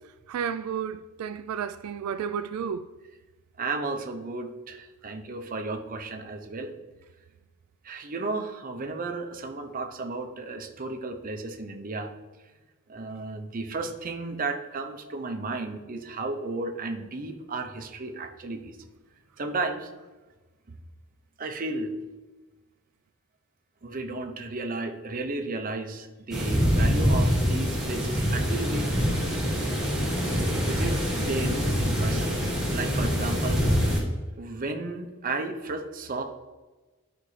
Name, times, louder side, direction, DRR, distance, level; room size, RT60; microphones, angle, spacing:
voice 1, 0.3-2.9, right 7 dB, 85° right, 0.3 m, -32 dB
voice 2, 3.6-6.7 7.8-12.1 12.9-18.8 19.4-19.9 21.4-22.0 23.8-28.9 30.5-32.4 32.7-33.8 34.4-36.2, right 3 dB, 40° right, 0.7 m, -33 dB
sound 1, 26.3-34.0, equal, ahead, 1.5 m, -25 dB
11.0 x 4.4 x 3.2 m
head